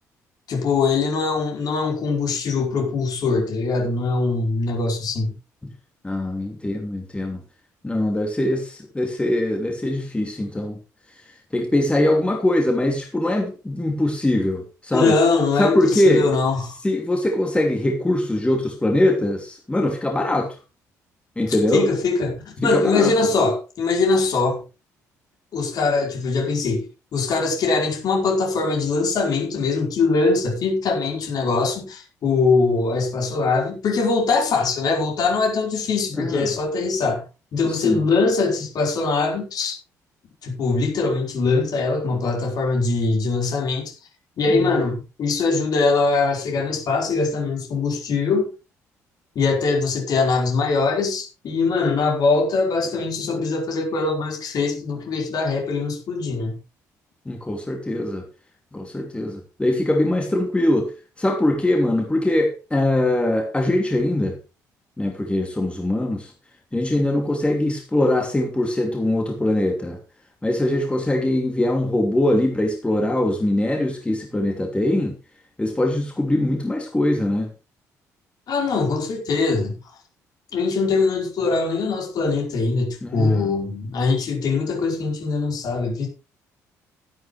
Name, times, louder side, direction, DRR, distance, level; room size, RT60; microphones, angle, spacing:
voice 1, 0.5-5.3 14.9-16.8 21.5-24.6 25.5-37.2 37.5-39.8 40.4-43.9 44.4-48.5 49.3-56.5 78.5-79.8 80.5-86.1, left 4 dB, 50° left, 4.7 m, -22 dB
voice 2, 6.0-7.4 7.8-10.8 11.5-15.2 15.6-16.3 16.8-20.5 21.4-21.9 22.6-23.3 36.2-36.5 37.6-38.0 44.5-44.8 57.3-58.2 58.7-64.4 65.0-66.3 66.7-70.0 70.4-75.1 75.6-77.5 83.0-83.5, left 1 dB, 15° left, 2.8 m, -22 dB
13.0 x 11.0 x 3.3 m
figure-of-eight pair, 45°, 8 cm